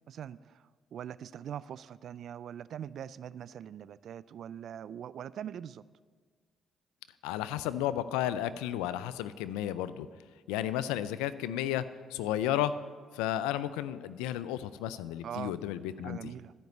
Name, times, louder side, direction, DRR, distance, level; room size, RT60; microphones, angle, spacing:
voice 1, 0.1-5.8 15.2-15.5 16.0-16.5, right 9 dB, 65° right, 18 dB, 0.3 m, -42 dB
voice 2, 7.2-10.1 10.5-11.9 12.1-12.7 13.1-16.3, left 12 dB, 85° left, 15 dB, 0.4 m, -33 dB
13.5 x 5.3 x 8.0 m, 1.6 s
hypercardioid pair, 50°, 0 cm